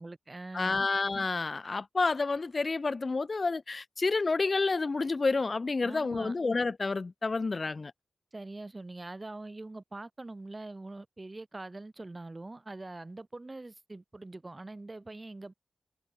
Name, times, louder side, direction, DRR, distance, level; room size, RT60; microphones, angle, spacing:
voice 1, 0.0-0.9 5.8-6.4 8.3-15.5, right 2 dB, 35° right, 7.9 m, -43 dB
voice 2, 0.5-7.9, left 3 dB, 55° left, 0.6 m, -29 dB
cardioid pair, 45°, 0 cm